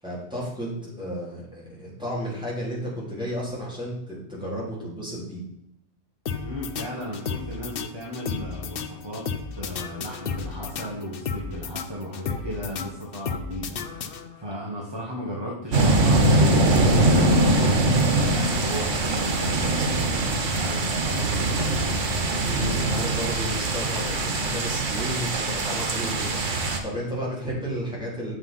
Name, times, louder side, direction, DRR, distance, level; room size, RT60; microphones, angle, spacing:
voice 1, 0.0-5.4 22.4-28.3, equal, 5° right, -7 dB, 4.0 m, -33 dB
sound 1, 6.3-14.6, left 5 dB, 55° left, 0.8 m, -34 dB
voice 2, 6.4-9.3 9.5-14.1 14.3-22.0, equal, 20° right, -3 dB, 1.6 m, -35 dB
sound 2, 15.7-26.8, right 2 dB, 90° right, 1.6 m, -22 dB
7.7 x 6.1 x 5.6 m, 0.81 s
omnidirectional pair, 1.2 m